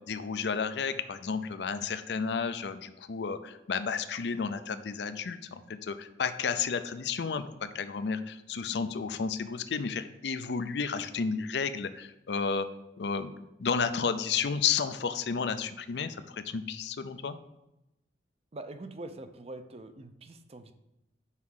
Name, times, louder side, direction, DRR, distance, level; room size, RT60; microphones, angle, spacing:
voice 1, 0.1-12.7 13.0-13.3 13.6-17.4, left 5 dB, 70° left, 11 dB, 0.5 m, -32 dB
voice 2, 18.5-20.7, right 2 dB, 35° right, 9 dB, 0.6 m, -44 dB
5.7 x 4.7 x 6.3 m, 0.91 s
head